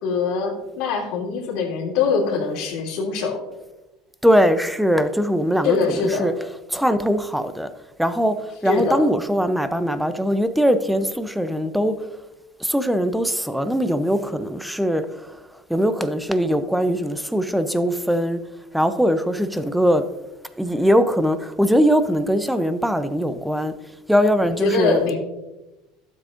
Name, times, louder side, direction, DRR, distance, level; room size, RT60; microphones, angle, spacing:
voice 1, 0.0-3.4 5.6-6.3 8.6-9.1 24.6-25.2, left 4 dB, 65° left, 2.9 m, -23 dB
voice 2, 4.2-6.3 6.7-7.7 8.0-12.0 12.6-15.4 15.7-18.4 18.7-20.0 20.6-23.7 24.1-25.2, equal, ahead, 0.6 m, -21 dB
12.0 x 7.5 x 2.6 m
supercardioid pair, 100°, 0 cm